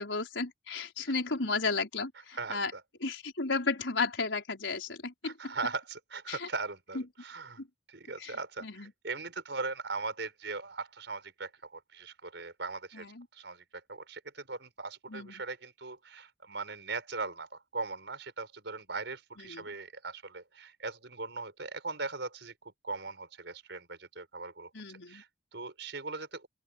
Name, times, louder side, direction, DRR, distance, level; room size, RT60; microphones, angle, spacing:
voice 1, 0.0-2.7 3.0-5.5 6.3-6.5 7.6-7.7 8.2-8.3 8.6-8.9 12.9-13.2 15.1-15.4 19.5-19.7 24.7-25.2, left 4 dB, 80° left, 4.9 m, -34 dB
voice 2, 2.3-2.8 5.2-7.6 7.9-13.1 13.3-26.5, right 3 dB, 65° right, 5.6 m, -40 dB
open air
head